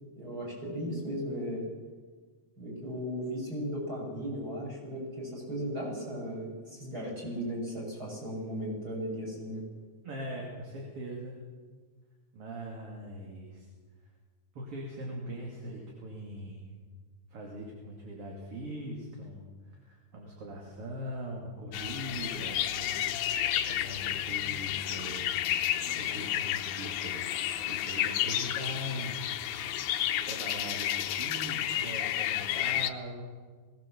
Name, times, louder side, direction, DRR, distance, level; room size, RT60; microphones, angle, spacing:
voice 1, 0.2-1.6 2.6-9.6, equal, 30° right, -2 dB, 7.0 m, -36 dB
voice 2, 10.0-11.4 12.3-13.7 14.6-16.7 17.3-23.1 23.6-25.4 26.0-27.3 27.6-29.2 30.2-33.3, equal, 50° right, -1 dB, 3.5 m, -41 dB
sound 1, 21.7-32.9, left 11 dB, 80° left, 2.3 m, -31 dB
21.0 x 17.5 x 7.3 m, 1.5 s
omnidirectional pair, 3.5 m